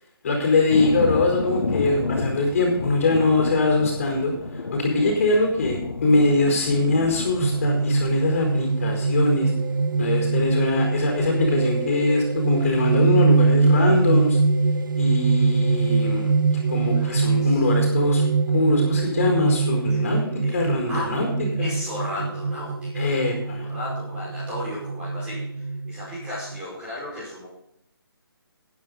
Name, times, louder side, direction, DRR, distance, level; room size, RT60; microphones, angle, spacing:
voice 1, 0.2-9.5 10.0-14.4 15.0-18.2 18.5-21.3 21.6-21.7 22.9-23.7, left 2 dB, 35° left, 1 dB, 4.7 m, -23 dB
Thunder, 0.7-7.7, left 3 dB, 70° left, 2.8 m, -30 dB
sound 1, 7.4-26.6, right 4 dB, 55° right, 0.9 m, -23 dB
voice 2, 16.7-17.6 19.9-20.0 20.4-20.6 20.9-21.1 21.5-25.4 25.9-27.5, left 1 dB, 10° right, -7 dB, 5.1 m, -35 dB
15.5 x 9.8 x 4.0 m, 0.74 s
hypercardioid pair, 170°, 13 cm